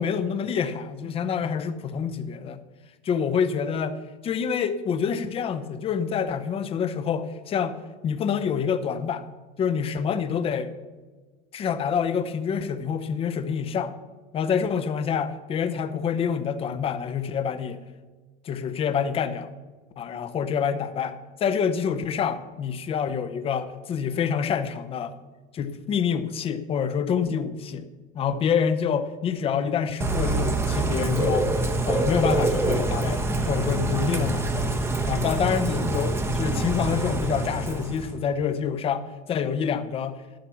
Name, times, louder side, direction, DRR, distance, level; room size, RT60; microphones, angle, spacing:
voice 1, 0.0-2.6 3.0-4.0 4.2-7.8 8.0-9.2 9.6-10.7 11.5-13.9 14.3-17.8 18.4-19.5 20.0-25.1 25.5-27.9 28.1-34.7 35.1-40.2, left 7 dB, 25° left, 11 dB, 0.8 m, -27 dB
Bird / Rain, 30.0-38.1, right 2 dB, 10° right, 0.9 m, -25 dB
12.5 x 7.4 x 7.0 m, 1.3 s
cardioid pair, 160°, 21 cm